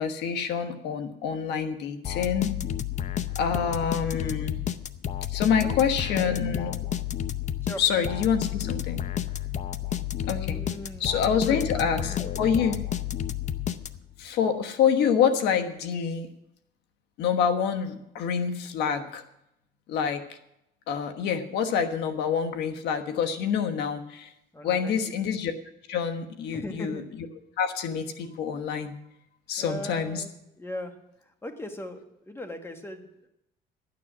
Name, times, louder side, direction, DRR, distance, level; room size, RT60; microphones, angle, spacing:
voice 1, 0.0-2.5 3.4-4.6 5.3-6.7 7.8-9.0 10.3-10.6 11.0-12.8 14.2-16.3 17.2-19.2 19.9-20.2 20.9-24.3 24.6-25.5 25.9-27.0 27.6-28.9 29.5-30.2, left 7 dB, 85° left, 7 dB, 1.3 m, -27 dB
sound 1, 2.0-14.2, left 10 dB, 45° left, 0.6 m, -31 dB
voice 2, 10.4-11.1 11.4-12.5 24.5-25.0 26.5-27.0 29.6-30.3 30.6-30.9 31.4-33.3, left 1 dB, 15° left, 5 dB, 1.7 m, -38 dB
12.5 x 9.4 x 6.1 m, 0.83 s
cardioid pair, 110°, 17 cm